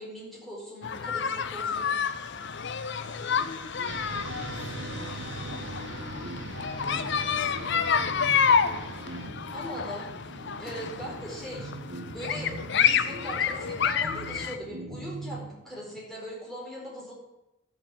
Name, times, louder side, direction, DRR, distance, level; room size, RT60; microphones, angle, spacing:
voice 1, 0.0-1.9 9.5-11.7 12.1-17.1, equal, ahead, -5 dB, 4.3 m, -40 dB
sound 1, 0.8-14.6, left 7 dB, 60° left, 0.7 m, -29 dB
voice 2, 3.0-5.3 5.6-6.0 6.5-9.4, left 2 dB, 85° left, -2 dB, 2.1 m, -47 dB
sound 2, 3.8-9.3, right 3 dB, 60° right, 1.1 m, -42 dB
sound 3, 4.1-16.0, right 1 dB, 85° right, 1.8 m, -42 dB
11.5 x 6.1 x 8.3 m, 0.93 s
head